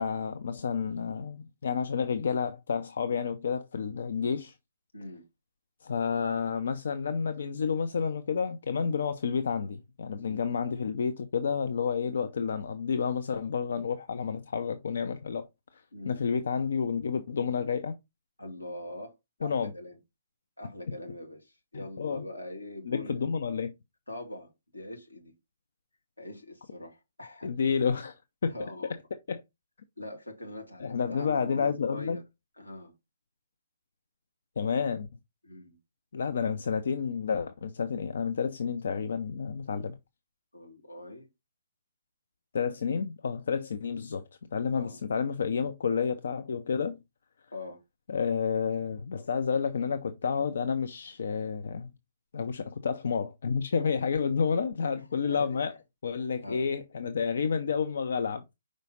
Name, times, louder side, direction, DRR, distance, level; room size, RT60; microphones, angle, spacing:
voice 1, 0.0-4.5 5.8-18.0 19.4-19.7 21.7-22.2 22.9-23.7 27.4-28.1 28.4-28.6 29.1-29.4 30.8-32.2 34.6-35.1 36.1-40.0 42.5-47.0 48.1-51.9 52.3-55.7 56.0-58.6, left 6 dB, 55° left, 0.6 m, -30 dB
voice 2, 4.9-5.3 10.2-10.5 15.9-16.2 18.4-20.0 20.6-23.3 24.1-25.3 26.2-27.5 28.4-28.9 30.0-32.2 32.6-32.9 35.4-35.8 40.5-41.3 44.7-45.0 47.5-47.8 54.9-55.6 56.4-56.7, left 1 dB, 85° left, 2.1 m, -43 dB
5.2 x 4.9 x 3.9 m
figure-of-eight pair, 125°, 0 cm